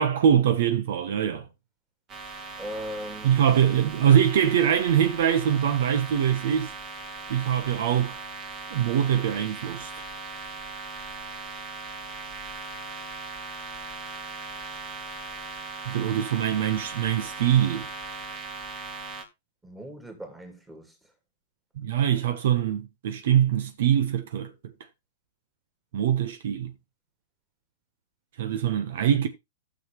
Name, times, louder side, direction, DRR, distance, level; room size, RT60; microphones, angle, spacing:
voice 1, 0.0-1.5 3.2-6.7 7.3-8.2 8.7-9.9 15.8-17.9 21.8-24.7 25.9-26.7 28.4-29.3, right 9 dB, 70° right, 1.0 m, -23 dB
sound 1, 2.1-19.2, right 4 dB, 35° right, 2.4 m, -39 dB
voice 2, 2.6-3.4 19.6-20.9, equal, 10° right, 2.7 m, -38 dB
15.5 x 6.4 x 3.1 m
hypercardioid pair, 130°, 0 cm